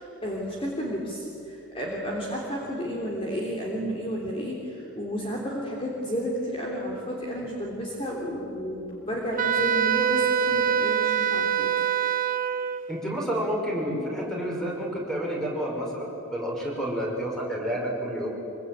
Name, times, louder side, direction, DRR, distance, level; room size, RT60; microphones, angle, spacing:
voice 1, 0.0-11.7, equal, 25° left, -2 dB, 3.3 m, -32 dB
Wind instrument woodwind instrument, 9.4-12.8, right 8 dB, 40° right, 1.0 m, -24 dB
voice 2, 12.9-18.3, equal, ahead, -2 dB, 5.7 m, -30 dB
25.5 x 23.5 x 9.3 m, 3.0 s
head